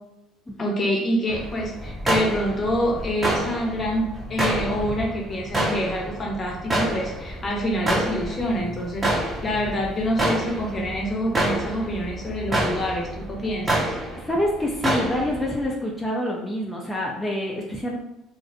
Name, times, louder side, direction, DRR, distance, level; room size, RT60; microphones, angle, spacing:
voice 1, 0.6-13.9, equal, 35° left, 0 dB, 0.7 m, -26 dB
sound 1, 1.3-15.7, right 1 dB, 25° right, 0.7 m, -28 dB
voice 2, 14.2-18.0, left 1 dB, 10° left, -3 dB, 0.5 m, -26 dB
2.5 x 2.0 x 2.6 m, 0.90 s
supercardioid pair, 75°, 0 cm